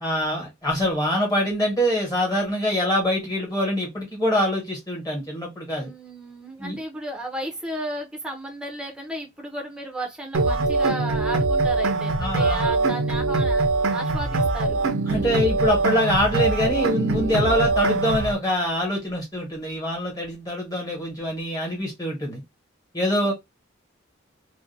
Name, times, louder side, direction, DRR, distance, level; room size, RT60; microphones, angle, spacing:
voice 1, 0.0-5.9 6.6-6.8 12.2-12.7 15.1-22.4 22.9-23.3, equal, 20° left, 1.1 m, -24 dB
voice 2, 5.8-14.8 17.5-17.7 23.2-23.3, right 1 dB, 5° right, 0.5 m, -34 dB
sound 1, 10.3-18.3, right 3 dB, 80° right, 0.5 m, -23 dB
2.5 x 2.1 x 2.6 m
head